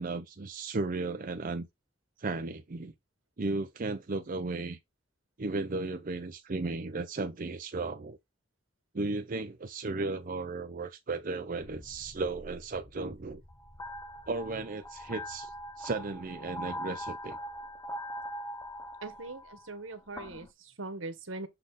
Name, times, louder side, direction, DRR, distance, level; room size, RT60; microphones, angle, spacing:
voice 1, 0.0-1.7 2.2-2.9 3.4-4.8 5.4-8.2 8.9-13.4 14.3-17.4, right 3 dB, 45° right, 0.6 m, -35 dB
sound 1, 11.6-20.5, equal, 15° left, 0.7 m, -42 dB
voice 2, 19.0-21.5, right 2 dB, 85° right, 1.3 m, -41 dB
6.7 x 4.1 x 3.7 m
head